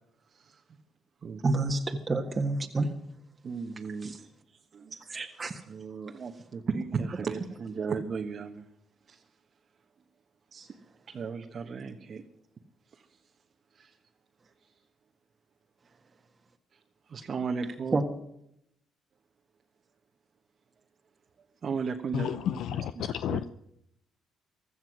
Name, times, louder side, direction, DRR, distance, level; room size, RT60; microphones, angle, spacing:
voice 1, 1.4-2.9 4.0-4.2 4.9-5.6 17.9-18.0, right 3 dB, 30° right, 1.7 m, -29 dB
voice 2, 3.4-4.3 4.7-5.0 5.7-8.6 9.1-9.2 10.5-10.7 11.1-12.2 13.8-13.9 17.1-18.0 21.6-23.5, right 5 dB, 50° right, 1.4 m, -35 dB
voice 3, 22.1-23.5, left 10 dB, 75° left, 0.6 m, -31 dB
16.0 x 13.0 x 6.3 m
supercardioid pair, 70°, 0 cm